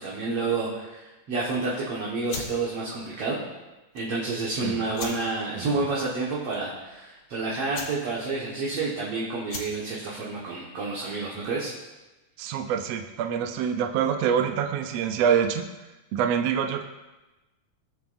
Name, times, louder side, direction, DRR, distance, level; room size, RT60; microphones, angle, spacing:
voice 1, 0.0-3.4 3.9-11.7, right 3 dB, 55° right, -6 dB, 2.4 m, -29 dB
sound 1, 2.2-11.7, left 3 dB, 45° left, 1.7 m, -42 dB
voice 2, 12.4-15.6 16.1-16.8, right 8 dB, 75° right, 4 dB, 1.6 m, -25 dB
20.5 x 7.0 x 2.6 m, 1.1 s
omnidirectional pair, 3.5 m